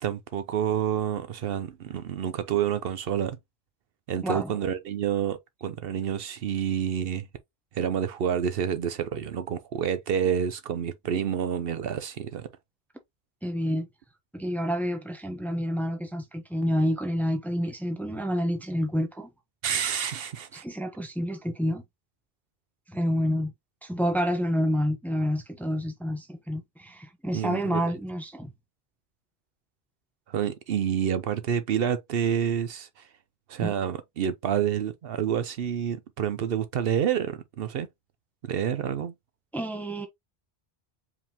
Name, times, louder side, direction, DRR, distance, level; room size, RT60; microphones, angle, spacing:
voice 1, 0.0-3.4 4.1-7.3 7.7-12.5 19.6-20.6 27.3-27.8 30.3-33.1 33.5-37.9 38.4-39.1, right 9 dB, 70° right, 0.8 m, -28 dB
voice 2, 13.4-13.9 14.3-19.3 20.5-21.8 22.9-23.5 23.8-28.5 33.6-33.7 39.5-40.1, equal, ahead, 0.7 m, -28 dB
4.9 x 3.6 x 2.8 m
omnidirectional pair, 1.1 m